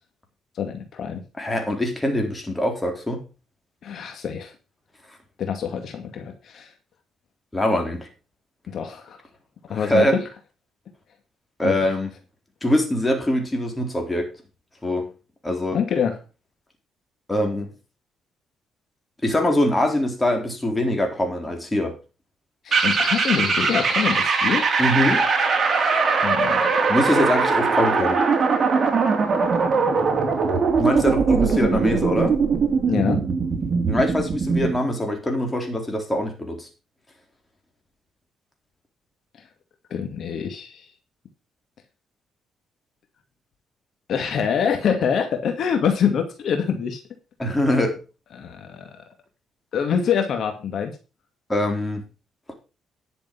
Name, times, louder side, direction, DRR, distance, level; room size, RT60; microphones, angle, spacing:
voice 1, 0.6-1.2 3.8-4.5 5.4-6.7 8.7-9.2 9.7-10.3 11.6-11.8 15.7-16.2 22.6-24.7 26.2-26.7 31.6-31.7 32.9-33.2 39.4-39.5 39.9-40.9 44.1-47.0 48.3-48.9 49.7-51.0, left 7 dB, 65° left, 5 dB, 2.2 m, -25 dB
voice 2, 1.4-3.2 7.5-8.1 9.7-10.2 11.6-12.1 12.6-14.3 14.8-15.1 15.4-15.8 17.3-17.7 19.2-22.0 24.8-25.2 26.9-28.2 30.8-32.4 33.9-36.7 47.4-48.0 51.5-52.0 52.5-52.6, left 1 dB, 15° left, 3 dB, 4.0 m, -23 dB
sound 1, 22.7-34.8, right 5 dB, 40° right, 3.4 m, -21 dB
11.0 x 6.9 x 5.6 m, 0.31 s
cardioid pair, 90°, 0 cm